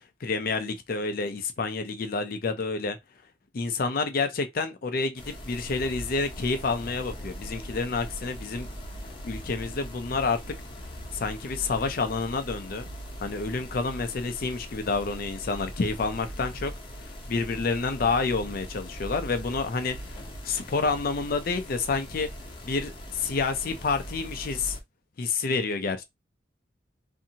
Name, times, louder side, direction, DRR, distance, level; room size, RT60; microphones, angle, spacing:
voice 1, 0.0-3.0 3.5-8.7 9.2-10.4 11.1-12.9 13.2-16.7 17.0-22.3 22.6-24.8 25.2-26.0, left 4 dB, 55° left, 0.5 m, -29 dB
sound 1, 5.2-24.8, equal, 30° left, 0.8 m, -40 dB
2.7 x 2.6 x 2.7 m
head